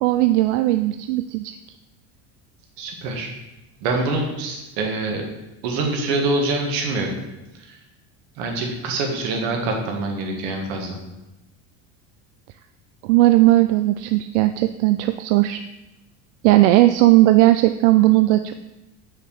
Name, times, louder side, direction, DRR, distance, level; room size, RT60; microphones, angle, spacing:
voice 1, 0.0-1.6 13.0-15.6 16.4-18.5, right 16 dB, 75° right, 10 dB, 0.5 m, -17 dB
voice 2, 2.8-3.3 3.8-5.2 5.6-7.1 8.4-11.0, right 2 dB, 55° right, 2 dB, 1.8 m, -25 dB
6.6 x 4.8 x 6.9 m, 0.97 s
cardioid pair, 175°, 35 cm